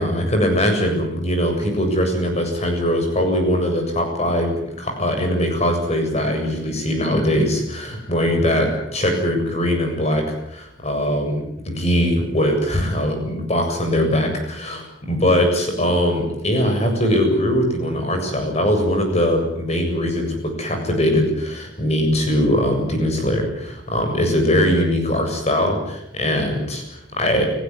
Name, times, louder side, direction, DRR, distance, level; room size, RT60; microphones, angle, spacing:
voice 1, 0.0-27.4, equal, 35° left, 4 dB, 7.6 m, -21 dB
30.0 x 16.0 x 9.8 m, 0.80 s
head